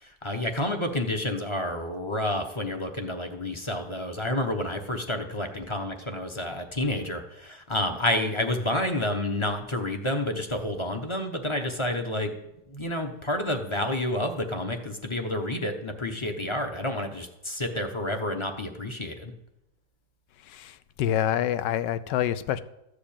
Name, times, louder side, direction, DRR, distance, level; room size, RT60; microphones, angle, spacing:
voice 1, 0.0-12.3 12.7-19.3, left 1 dB, 25° left, 5 dB, 0.7 m, -29 dB
voice 2, 21.0-22.6, left 10 dB, 80° left, 13 dB, 1.2 m, -26 dB
14.0 x 5.0 x 8.7 m, 0.88 s
omnidirectional pair, 1.9 m